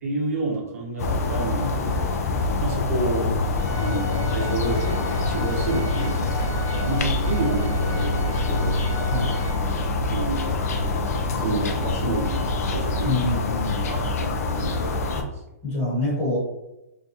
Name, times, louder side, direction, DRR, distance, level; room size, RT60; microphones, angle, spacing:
voice 1, 0.0-2.1 2.6-3.3 3.8-6.3 6.8-8.8 10.1-10.5 11.3-13.2 13.5-13.6 13.9-15.3, right 2 dB, 65° right, -1 dB, 0.7 m, -29 dB
sound 1, 1.0-15.2, left 3 dB, 65° left, 0.4 m, -25 dB
Bowed string instrument, 3.5-9.5, left 1 dB, 5° left, 0.8 m, -39 dB
voice 2, 9.1-9.4 13.0-13.9 15.1-15.2 15.6-16.4, left 2 dB, 25° left, -9 dB, 1.2 m, -26 dB
2.6 x 2.3 x 2.6 m, 0.92 s
hypercardioid pair, 160°, 9 cm